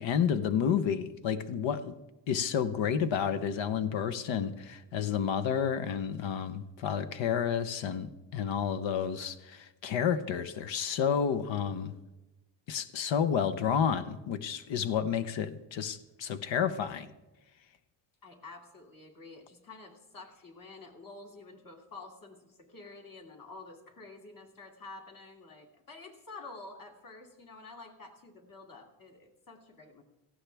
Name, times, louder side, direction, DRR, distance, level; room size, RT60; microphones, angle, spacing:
voice 1, 0.0-1.9 2.3-11.9 12.7-17.1, left 7 dB, 85° left, 12 dB, 1.0 m, -30 dB
voice 2, 18.2-30.0, left 3 dB, 50° left, 2 dB, 2.6 m, -49 dB
17.5 x 15.0 x 3.4 m, 1.0 s
cardioid pair, 110°, 44 cm